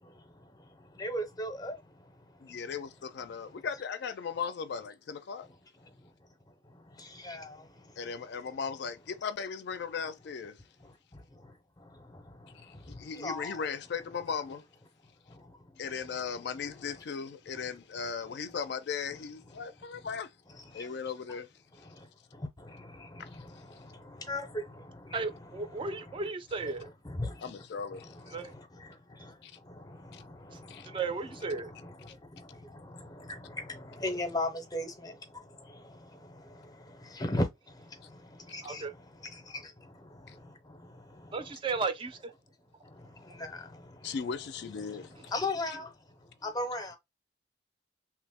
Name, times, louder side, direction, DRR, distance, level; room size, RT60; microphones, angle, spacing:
voice 1, 0.0-2.6 5.8-6.1 6.6-8.0 10.8-13.6 15.3-16.2 19.5-19.7 20.0-20.1 20.6-20.9 21.7-25.3 25.8-26.1 27.0-27.5 27.9-31.0 31.6-38.8 39.3-41.3 42.8-44.2 44.9-45.9 46.2-47.0, left 1 dB, 20° left, 0.6 m, -40 dB
voice 2, 2.4-5.5 8.0-10.6 12.6-14.6 15.8-20.3 20.7-21.5 23.2-23.3 27.4-28.3 29.4-29.5 30.1-30.2 30.7-30.9 40.3-40.4 44.0-45.3, left 6 dB, 65° left, 0.4 m, -37 dB
voice 3, 25.1-26.9 28.3-28.5 30.5-30.6 30.8-31.7 38.6-38.9 41.3-42.3, right 4 dB, 30° right, 0.3 m, -34 dB
3.0 x 2.0 x 3.5 m
head